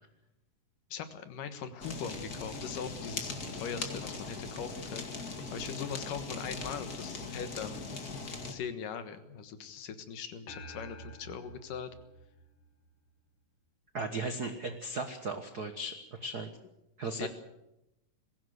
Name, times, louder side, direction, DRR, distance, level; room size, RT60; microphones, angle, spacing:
voice 1, 0.9-7.9 8.5-11.9 17.2-17.3, left 7 dB, 70° left, 10 dB, 3.0 m, -41 dB
Fire, 1.8-8.5, left 3 dB, 35° left, 1.9 m, -40 dB
sound 1, 10.5-13.1, right 1 dB, 50° left, 2.5 m, -49 dB
voice 2, 13.9-16.5 17.0-17.3, right 2 dB, 75° right, 7 dB, 0.9 m, -36 dB
21.0 x 16.5 x 8.1 m, 0.91 s
omnidirectional pair, 4.0 m